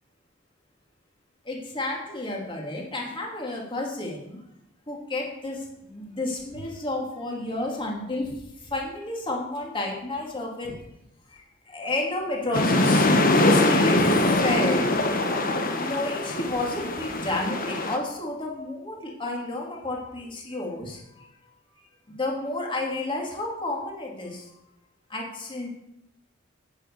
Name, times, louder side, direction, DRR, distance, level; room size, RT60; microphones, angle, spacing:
voice 1, 1.4-4.4 4.9-8.3 8.6-10.8 11.3-13.1 13.4-14.9 15.8-21.3 22.1-24.5 25.1-25.7, left 2 dB, 25° left, -1 dB, 2.7 m, -31 dB
sound 1, 12.5-18.0, left 2 dB, 45° left, 1.3 m, -22 dB
9.0 x 8.9 x 6.8 m, 0.84 s
head